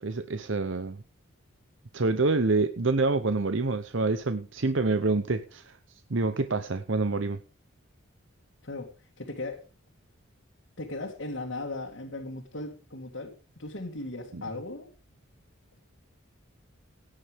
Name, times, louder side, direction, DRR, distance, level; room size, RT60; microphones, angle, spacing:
voice 1, 0.0-1.0 1.9-5.8 6.1-7.4 14.3-14.4, right 3 dB, 65° right, 10 dB, 0.8 m, -27 dB
voice 2, 9.2-9.6 10.8-14.9, left 2 dB, 65° left, 0 dB, 2.1 m, -37 dB
17.5 x 9.8 x 3.6 m, 0.34 s
head